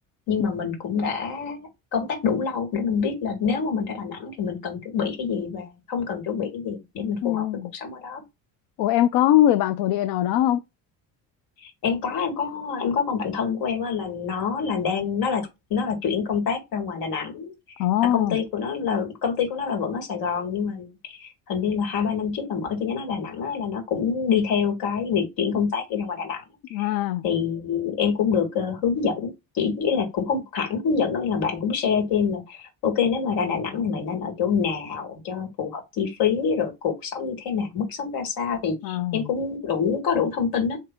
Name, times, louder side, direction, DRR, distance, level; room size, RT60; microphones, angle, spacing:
voice 1, 0.3-7.5 7.7-8.2 11.6-17.6 18.0-26.4 26.7-26.9 27.2-40.8, left 6 dB, 75° left, 1.9 m, -26 dB
voice 2, 7.2-7.7 8.8-10.6 17.8-18.4 26.7-27.2 38.8-39.3, left 12 dB, 90° left, 0.5 m, -21 dB
7.9 x 2.7 x 2.3 m
cardioid pair, 150°, 36 cm